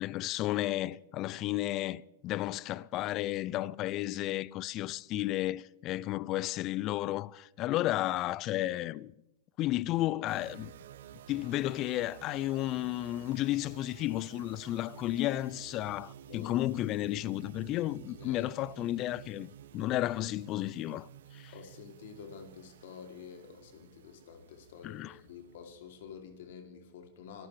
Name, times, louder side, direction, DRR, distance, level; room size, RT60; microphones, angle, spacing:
voice 1, 0.0-9.1 9.6-10.7 11.3-21.1 21.3-21.5 24.8-25.1, left 15 dB, 40° left, 0.5 m, -33 dB
sound 1, 10.3-26.6, right 10 dB, 70° right, 0.9 m, -52 dB
voice 2, 16.3-16.7 18.1-18.5 21.5-27.5, left 6 dB, 65° left, 2.9 m, -49 dB
25.0 x 13.0 x 3.3 m
hypercardioid pair, 105°, 0 cm